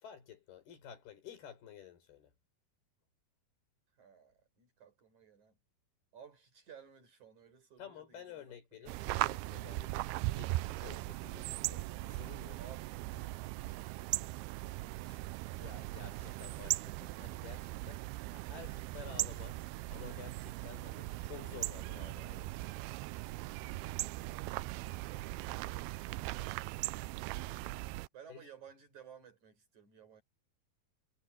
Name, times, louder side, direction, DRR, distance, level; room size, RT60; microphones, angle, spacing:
voice 1, 0.0-2.3 7.8-10.0 10.3-12.6 15.1-15.2 15.6-22.8 28.3-28.4, left 8 dB, 85° left, 6.4 m, -52 dB
voice 2, 4.0-5.6 6.1-9.2 12.6-15.3 28.1-30.2, right 7 dB, 50° right, 6.2 m, -58 dB
sound 1, 8.9-28.1, right 19 dB, 85° right, 2.5 m, -39 dB
omnidirectional pair, 4.4 m